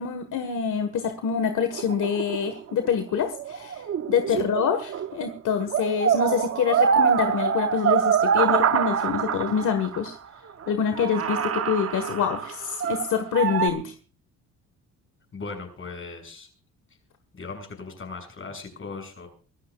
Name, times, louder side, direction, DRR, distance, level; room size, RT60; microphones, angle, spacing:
voice 1, 0.0-10.2 10.7-13.9, left 7 dB, 65° left, 8 dB, 1.6 m, -26 dB
sound 1, 1.7-5.3 5.6-10.1 10.6-10.7 10.9-13.7, right 7 dB, 45° right, 0.9 m, -25 dB
voice 2, 15.3-16.5 17.3-19.3, left 4 dB, 40° left, 4 dB, 7.1 m, -38 dB
24.5 x 14.5 x 2.4 m, 0.38 s
cardioid pair, 100°, 33 cm